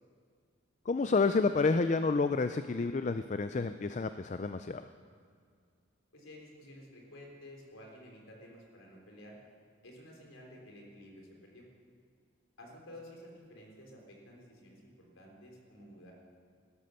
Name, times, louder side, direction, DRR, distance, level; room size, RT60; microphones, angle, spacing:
voice 1, 0.9-4.8, left 4 dB, 35° left, 10 dB, 0.4 m, -29 dB
voice 2, 6.1-9.4 9.8-11.7 12.6-16.1, left 1 dB, 85° left, 0 dB, 3.7 m, -52 dB
17.0 x 13.0 x 6.6 m, 2.2 s
head